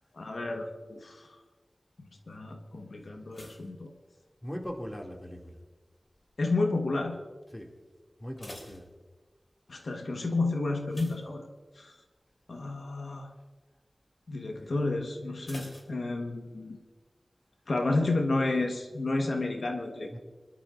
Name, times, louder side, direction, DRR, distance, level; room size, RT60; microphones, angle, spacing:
voice 1, 0.1-1.3 2.3-3.9 6.4-7.2 9.7-11.5 11.8-11.9 12.5-13.3 14.3-16.8 17.7-20.2, left 2 dB, 90° left, 3 dB, 1.3 m, -31 dB
sound 1, 3.3-4.8 5.0-5.5 6.1-6.5 6.8-6.9 7.3-7.4 8.0-9.6 10.9-12.0 12.4-12.6 13.0-13.1 15.4-16.6 16.9-17.0, left 1 dB, 45° left, 3.3 m, -50 dB
voice 2, 4.4-5.5 7.5-7.7 8.2-8.9 14.5-14.7 20.1-20.2, equal, 20° left, 0 dB, 2.4 m, -40 dB
24.5 x 12.0 x 2.5 m, 1.3 s
wide cardioid pair, 60°, 0 cm